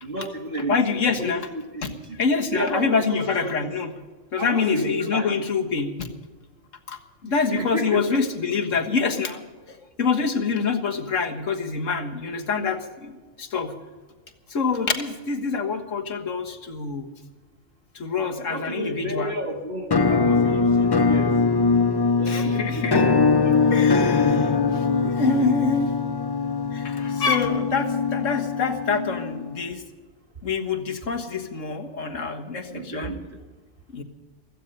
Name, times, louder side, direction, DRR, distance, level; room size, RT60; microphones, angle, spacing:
voice 1, 0.0-2.2 2.5-3.7 4.4-5.3 7.2-8.2 18.5-21.3 22.2-23.9 24.2-24.3 24.9-25.7 32.7-33.2, right 1 dB, 45° right, 3 dB, 2.3 m, -32 dB
voice 2, 0.7-1.5 1.8-1.9 2.2-3.9 4.3-6.1 6.9-13.7 14.5-17.1 18.0-19.3 22.3-23.0 23.7-25.9 26.7-29.8 30.4-33.1 33.9-34.0, left 5 dB, 80° left, 4 dB, 1.9 m, -26 dB
Musical instrument, 19.9-29.7, left 4 dB, 35° left, 0.4 m, -22 dB
16.5 x 14.5 x 5.5 m, 1.3 s
omnidirectional pair, 1.3 m